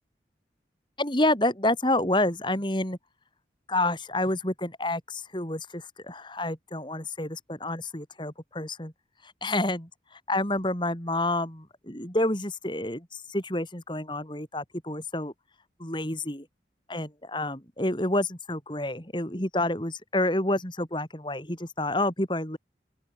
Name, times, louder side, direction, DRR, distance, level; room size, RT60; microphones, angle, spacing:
voice 1, 1.0-3.0 3.7-8.9 9.2-15.3 15.8-16.5 16.9-22.6, left 1 dB, 25° left, 4.4 m, -29 dB
open air
head